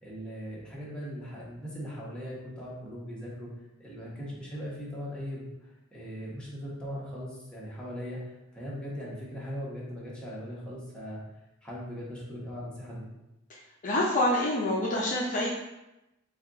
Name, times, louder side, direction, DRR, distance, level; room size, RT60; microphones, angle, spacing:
voice 1, 0.0-3.5 3.8-8.2 8.5-11.2 11.6-13.1, equal, 5° left, -7 dB, 1.0 m, -39 dB
voice 2, 13.8-15.5, left 1 dB, 40° left, -4 dB, 0.6 m, -26 dB
4.2 x 2.4 x 3.9 m, 0.93 s
head